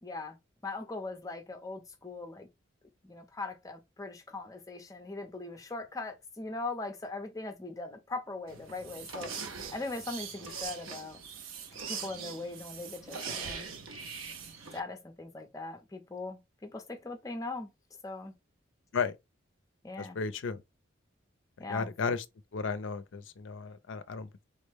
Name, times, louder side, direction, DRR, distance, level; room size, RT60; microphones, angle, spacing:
voice 1, 0.0-0.4 0.6-2.5 3.0-11.2 11.9-13.7 14.7-17.7 18.0-18.3 19.8-20.2 21.6-21.9, left 3 dB, 15° left, 0.5 m, -40 dB
sound 1, 8.5-14.8, right 5 dB, 85° right, 0.6 m, -41 dB
voice 2, 20.0-20.6 21.7-22.2 22.5-24.4, left 5 dB, 65° left, 0.4 m, -34 dB
3.5 x 2.1 x 3.3 m
head